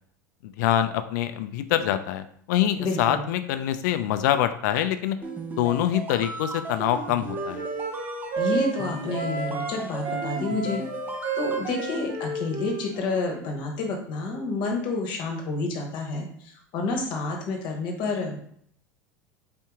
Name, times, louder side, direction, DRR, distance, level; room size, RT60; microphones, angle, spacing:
voice 1, 0.4-5.2 5.6-7.6, left 11 dB, 70° left, 11 dB, 0.4 m, -25 dB
voice 2, 2.8-3.2 8.4-10.8 11.3-18.4, left 3 dB, 55° left, 2 dB, 1.1 m, -29 dB
sound 1, 5.2-12.1, right 2 dB, 20° right, 0.8 m, -36 dB
Wind instrument woodwind instrument, 6.8-9.7 10.0-13.4, right 4 dB, 45° right, 1.5 m, -32 dB
4.2 x 2.9 x 3.5 m, 0.65 s
hypercardioid pair, 90°, 10 cm